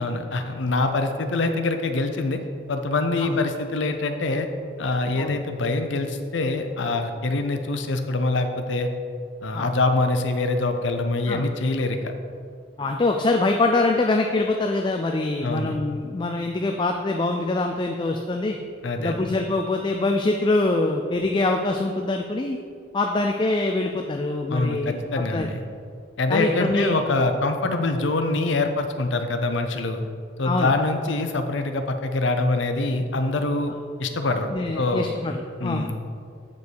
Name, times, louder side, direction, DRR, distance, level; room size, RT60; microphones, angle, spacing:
voice 1, 0.0-2.4 2.7-4.5 4.8-8.9 9.4-12.1 15.4-15.8 18.8-19.1 24.5-25.6 26.2-30.0 30.4-33.7 34.0-34.5 34.7-35.1 35.6-35.9, left 2 dB, 75° left, 7 dB, 0.6 m, -24 dB
voice 2, 12.8-18.6 19.0-22.6 22.9-25.0 25.3-25.5 26.3-26.9 30.4-30.7 34.5-35.3 35.6-35.9, left 2 dB, 25° left, 3 dB, 0.3 m, -24 dB
8.3 x 5.2 x 4.6 m, 2.2 s
head